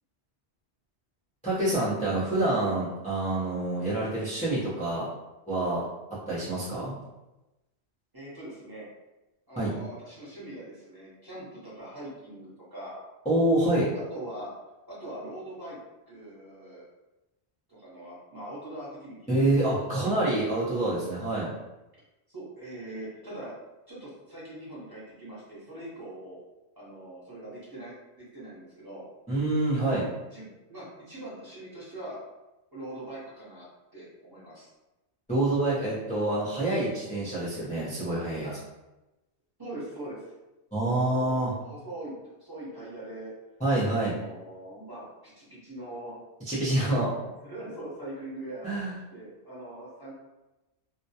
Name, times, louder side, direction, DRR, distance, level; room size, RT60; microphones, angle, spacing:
voice 1, 1.4-5.1 5.5-5.8 6.3-6.9 9.6-9.7 13.3-13.9 19.3-21.5 29.3-30.1 35.3-38.5 40.7-41.5 43.6-44.2 46.5-47.1 48.6-48.9, right 1 dB, 10° left, -10 dB, 0.3 m, -26 dB
voice 2, 8.1-8.9 9.5-13.0 13.9-14.5 14.9-15.8 16.1-16.8 17.7-20.1 22.3-23.5 23.9-26.4 26.7-29.0 30.3-32.2 32.7-33.6 33.9-34.7 38.4-38.6 39.6-40.3 40.9-41.3 41.6-42.1 42.4-43.3 43.8-46.2 47.1-48.7 49.1-50.1, right 1 dB, 25° right, -9 dB, 0.7 m, -42 dB
2.2 x 2.1 x 2.7 m, 1.0 s
omnidirectional pair, 1.1 m